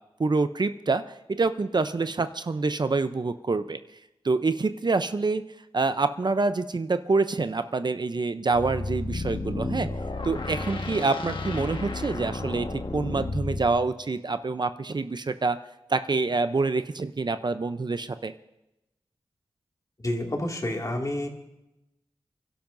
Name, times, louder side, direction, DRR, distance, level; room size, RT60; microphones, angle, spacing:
voice 1, 0.2-1.0 1.4-3.8 4.2-5.4 5.7-9.9 10.2-15.6 15.9-18.3, right 3 dB, 45° right, 11 dB, 0.6 m, -26 dB
sound 1, 8.5-13.8, left 2 dB, 55° left, 1.4 m, -32 dB
voice 2, 20.0-21.3, left 1 dB, 35° left, 1 dB, 2.2 m, -29 dB
29.0 x 12.0 x 2.6 m, 0.92 s
wide cardioid pair, 70°, 10 cm